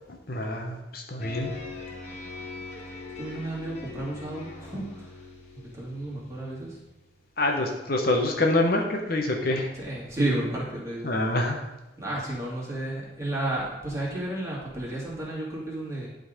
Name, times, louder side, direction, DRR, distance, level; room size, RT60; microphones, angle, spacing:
voice 1, 0.0-1.5 7.4-9.7 11.0-11.6, left 2 dB, 55° left, 1 dB, 1.0 m, -26 dB
sound 1, 1.2-7.4, left 3 dB, 40° left, 1.4 m, -42 dB
voice 2, 3.2-5.1 5.5-6.8 9.8-11.2 12.0-16.1, right 1 dB, 15° right, -6 dB, 2.4 m, -32 dB
11.0 x 3.9 x 5.1 m, 0.99 s
head